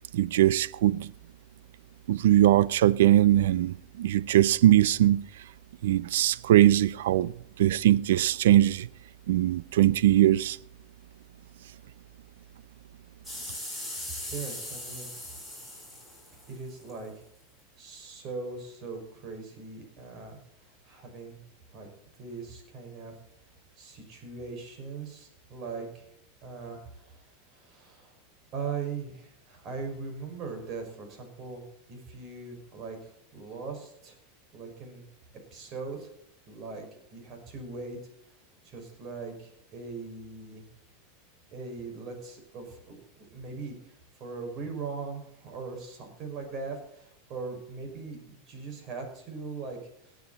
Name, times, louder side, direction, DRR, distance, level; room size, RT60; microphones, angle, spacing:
voice 1, 0.1-1.1 2.1-5.2 5.8-8.9 9.3-10.6, right 13 dB, 80° right, 0.4 m, -21 dB
sound 1, 13.2-16.9 17.6-17.7, left 1 dB, 10° right, 6.9 m, -39 dB
voice 2, 14.3-15.1 16.5-17.1 17.8-20.4 20.8-21.4 21.7-21.9 22.2-23.1 23.8-26.1 26.4-28.2 28.5-34.2 34.5-35.0 35.5-36.1 36.5-36.8 37.1-38.0 38.6-40.6 41.5-43.0 43.3-49.8 50.0-50.1, right 4 dB, 40° right, 5.9 m, -40 dB
18.5 x 9.5 x 4.2 m
supercardioid pair, 125°, 0 cm